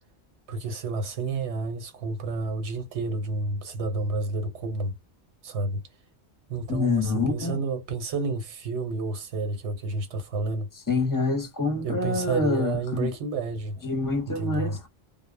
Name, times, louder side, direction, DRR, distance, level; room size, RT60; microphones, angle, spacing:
voice 1, 0.5-4.9 5.4-5.8 6.5-10.7 11.8-13.8 14.4-14.7, right 3 dB, 90° right, 1.1 m, -30 dB
voice 2, 6.7-7.6 10.9-13.1 13.8-14.9, left 3 dB, 25° left, 0.6 m, -26 dB
2.1 x 2.0 x 3.3 m
omnidirectional pair, 1.1 m